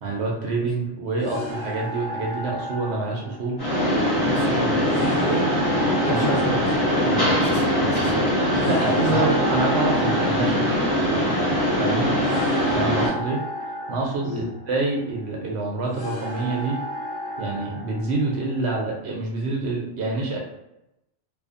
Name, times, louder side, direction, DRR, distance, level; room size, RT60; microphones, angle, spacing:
voice 1, 0.0-3.6 6.1-6.3 8.4-10.7 11.1-11.3 11.8-12.1 12.6-13.4 13.9-16.8 17.4-20.4, right 3 dB, 65° right, -2 dB, 0.8 m, -27 dB
sound 1, 1.2-18.9, equal, 25° right, 0.5 m, -35 dB
Mechanisms, 3.6-13.1, equal, 20° left, 1.2 m, -22 dB
voice 2, 4.3-5.5 6.0-8.2 9.0-9.6 14.2-14.4, right 1 dB, 50° left, -7 dB, 1.2 m, -28 dB
2.5 x 2.5 x 2.4 m, 0.87 s
omnidirectional pair, 1.2 m